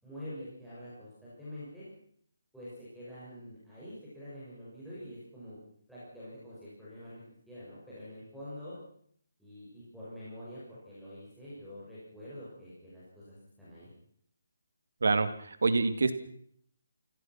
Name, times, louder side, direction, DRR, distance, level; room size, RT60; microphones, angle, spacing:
voice 1, 0.0-1.8 2.5-5.6 5.9-8.7 9.4-13.9, left 1 dB, ahead, -13 dB, 6.4 m, -46 dB
voice 2, 15.0-16.1, right 3 dB, 70° right, 10 dB, 2.7 m, -26 dB
29.5 x 17.0 x 6.1 m, 0.64 s
hypercardioid pair, 170°, 0 cm